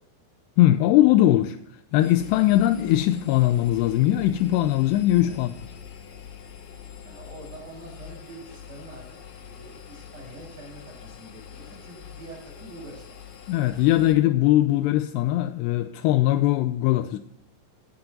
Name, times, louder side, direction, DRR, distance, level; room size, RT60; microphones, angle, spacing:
voice 1, 0.6-1.6 1.9-5.5 13.5-17.2, left 14 dB, 85° left, 2.6 m, -20 dB
Engine, 2.0-14.1, left 8 dB, 65° left, 2.5 m, -44 dB
voice 2, 7.0-13.1, right 2 dB, 40° right, 6.3 m, -45 dB
17.5 x 6.0 x 5.2 m
omnidirectional pair, 4.9 m